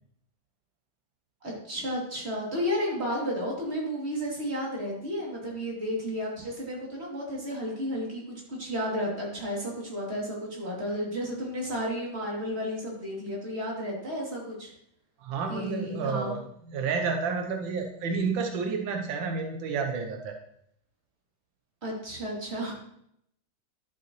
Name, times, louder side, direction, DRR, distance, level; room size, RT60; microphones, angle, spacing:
voice 1, 1.4-8.2 8.5-14.7 15.5-16.3 21.8-22.7, equal, 35° right, -3 dB, 3.0 m, -32 dB
voice 2, 15.2-20.4, right 5 dB, 85° right, 4 dB, 1.5 m, -30 dB
11.5 x 7.9 x 3.1 m, 0.72 s
omnidirectional pair, 2.1 m